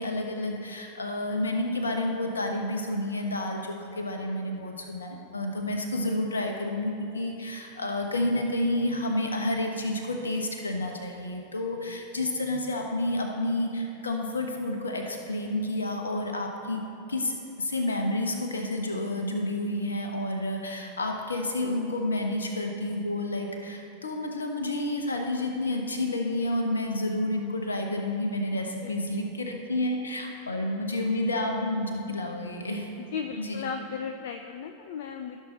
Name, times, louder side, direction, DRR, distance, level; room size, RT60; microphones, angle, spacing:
voice 1, 0.0-16.8 17.1-32.9 33.4-33.6, left 1 dB, 75° left, 3 dB, 1.0 m, -30 dB
voice 2, 33.1-35.4, left 6 dB, 55° left, 6 dB, 0.4 m, -35 dB
15.0 x 6.5 x 3.3 m, 3.0 s
figure-of-eight pair, 90°, 0 cm